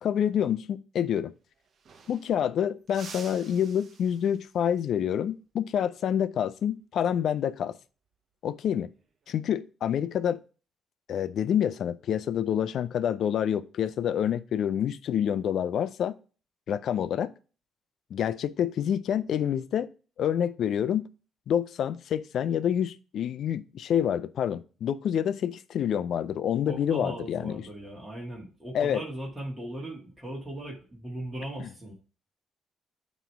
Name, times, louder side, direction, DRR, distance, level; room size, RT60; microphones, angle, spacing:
voice 1, 0.0-1.3 2.1-7.8 8.4-8.9 9.3-10.4 11.1-16.1 16.7-17.3 18.1-19.9 20.2-21.1 21.5-27.6 28.7-29.0 31.6-31.7, left 9 dB, 70° left, 0.4 m, -27 dB
sound 1, 1.3-1.4 1.6-2.5 2.9-4.6 7.1-7.4 8.8-9.3, right 5 dB, 55° right, 0.9 m, -49 dB
voice 2, 26.7-31.9, right 1 dB, 10° right, 1.8 m, -38 dB
9.2 x 3.1 x 4.6 m
cardioid pair, 90°, 0 cm